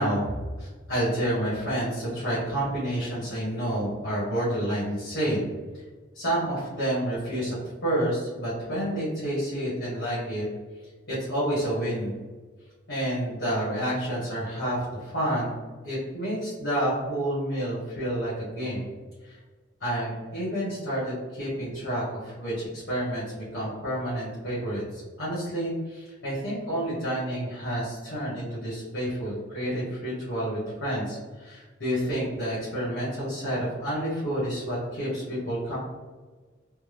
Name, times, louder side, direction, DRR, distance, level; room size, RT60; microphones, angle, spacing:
voice 1, 0.0-5.4 6.1-7.6 7.8-10.4 11.1-12.2 12.9-15.5 15.8-18.9 19.2-19.4 19.8-35.8, right 1 dB, 70° left, -9 dB, 1.2 m, -29 dB
3.5 x 2.1 x 3.4 m, 1.4 s
head